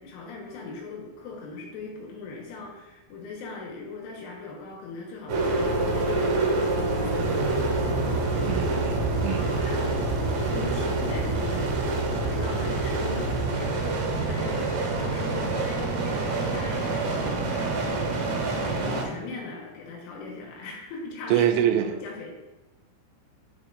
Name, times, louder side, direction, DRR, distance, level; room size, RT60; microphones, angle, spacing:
voice 1, 0.0-8.7 9.3-22.3, left 3 dB, 75° left, -1 dB, 3.5 m, -40 dB
sound 1, 5.3-19.0, right 2 dB, 70° right, 2.1 m, -26 dB
voice 2, 8.4-9.6 21.3-21.9, right 10 dB, 85° right, 6 dB, 3.0 m, -25 dB
8.7 x 6.2 x 2.5 m, 1.0 s
omnidirectional pair, 5.9 m